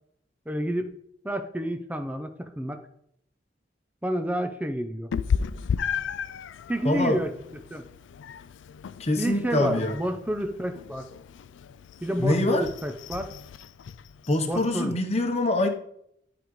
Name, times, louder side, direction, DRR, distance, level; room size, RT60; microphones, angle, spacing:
voice 1, 0.5-0.9 1.2-2.8 4.0-5.1 6.7-7.3 7.7-7.8 9.2-11.1 12.0-13.3 14.4-15.0, equal, 10° right, 7 dB, 0.5 m, -29 dB
Meow, 5.1-14.8, left 6 dB, 85° left, 0.4 m, -35 dB
voice 2, 6.8-7.2 9.0-10.0 12.2-12.7 14.3-15.7, left 2 dB, 35° left, 5 dB, 0.9 m, -24 dB
11.5 x 5.0 x 3.1 m, 0.73 s
head